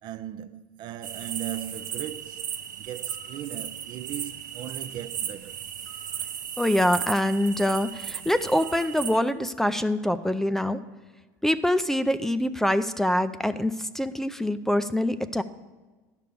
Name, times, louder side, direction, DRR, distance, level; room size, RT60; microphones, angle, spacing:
voice 1, 0.0-2.5 2.8-5.6, right 11 dB, 50° right, 0.5 m, -38 dB
sound 1, 1.0-9.2, right 9 dB, 80° right, 0.8 m, -36 dB
voice 2, 6.6-10.8 11.4-15.4, left 1 dB, 5° left, 0.4 m, -25 dB
11.5 x 5.4 x 6.8 m
hypercardioid pair, 90°, 9 cm